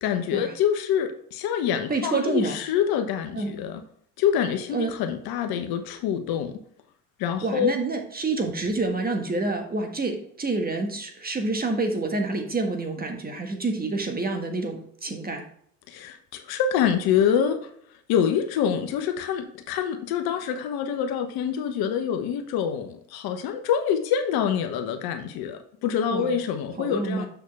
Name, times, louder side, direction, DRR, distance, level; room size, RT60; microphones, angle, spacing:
voice 1, 0.0-3.8 4.2-6.6 7.2-7.8 15.9-17.6 18.1-27.3, left 8 dB, 50° left, 7 dB, 1.2 m, -26 dB
voice 2, 1.9-2.6 3.3-3.6 4.7-4.9 7.4-15.5 26.1-26.3 26.8-27.3, right 3 dB, 20° right, 4 dB, 1.6 m, -28 dB
7.0 x 6.3 x 3.4 m, 0.64 s
hypercardioid pair, 75°, 46 cm